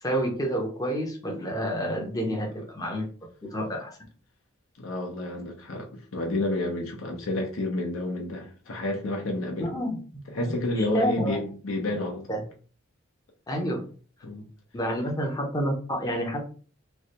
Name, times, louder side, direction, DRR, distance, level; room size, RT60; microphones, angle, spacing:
voice 1, 0.0-3.0 3.4-4.0 9.6-11.4 12.3-12.4 13.5-13.8 14.7-16.4, equal, 20° left, 0.6 m, -29 dB
voice 2, 4.8-9.8 10.3-12.4 14.2-14.5, left 2 dB, 80° left, 0.8 m, -30 dB
3.1 x 2.4 x 2.9 m
head